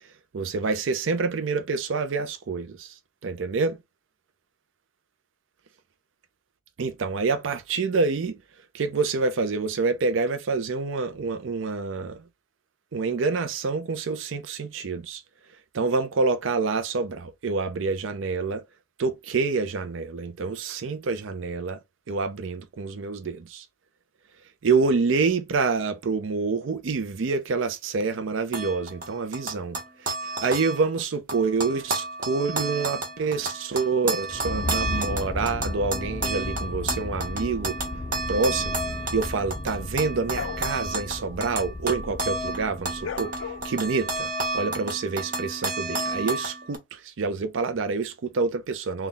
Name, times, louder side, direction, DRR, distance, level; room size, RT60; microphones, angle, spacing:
voice 1, 0.3-3.8 6.8-8.4 8.7-12.2 12.9-15.2 15.7-18.6 19.0-21.8 22.1-23.7 24.6-30.2 30.4-37.8 38.3-38.8 39.1-49.1, right 4 dB, 85° right, 0.5 m, -27 dB
sound 1, 28.5-31.0 31.3-46.8, right 2 dB, 45° right, 0.9 m, -32 dB
sound 2, 34.3-43.9, left 2 dB, 25° left, 0.4 m, -35 dB
sound 3, 38.8-42.3 42.5-44.6, left 7 dB, 85° left, 0.4 m, -40 dB
3.4 x 2.2 x 3.8 m
head